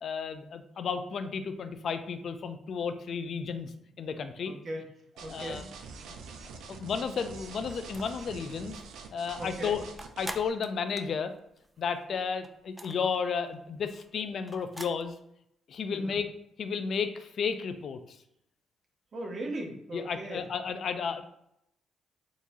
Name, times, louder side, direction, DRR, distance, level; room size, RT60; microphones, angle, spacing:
voice 1, 0.0-3.7 4.0-4.5 5.3-5.6 6.8-8.8 9.1-9.8 10.2-11.3 11.8-15.1 15.7-16.3 16.6-18.2 19.9-21.2, left 6 dB, 60° left, 9 dB, 0.4 m, -33 dB
voice 2, 4.5-4.9 5.2-5.7 9.4-9.8 15.9-16.2 19.1-20.5, right 1 dB, 45° right, 1 dB, 0.8 m, -38 dB
sound 1, 5.2-10.5, right 5 dB, 85° right, 0.5 m, -45 dB
sound 2, 7.7-8.3 8.7-8.8 9.1-12.1 12.3-15.0, right 1 dB, 10° right, 0.3 m, -44 dB
3.7 x 2.9 x 2.6 m, 0.77 s
cardioid pair, 90°, 0 cm